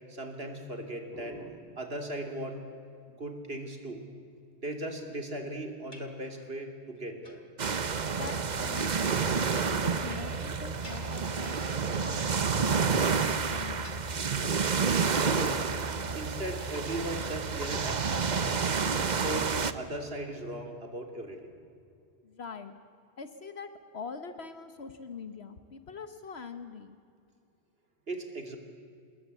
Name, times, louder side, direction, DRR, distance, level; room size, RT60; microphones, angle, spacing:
voice 1, 0.1-2.6 3.2-4.0 4.6-7.4 15.2-15.8 16.1-18.6 19.0-21.5 28.1-28.6, right 1 dB, 60° right, 5 dB, 3.2 m, -38 dB
sound 1, 5.9-6.6 7.0-8.1 8.6-9.2 9.5-13.0 13.4-14.4 14.7-15.8 16.1-16.7, left 2 dB, 45° left, 2.8 m, -54 dB
sound 2, 7.6-19.7, right 5 dB, 45° right, 1.0 m, -29 dB
voice 2, 8.2-9.2 9.5-14.3 22.2-22.7 23.2-27.0, left 5 dB, 70° left, 9 dB, 1.4 m, -44 dB
27.5 x 20.5 x 8.4 m, 2.4 s
omnidirectional pair, 1.1 m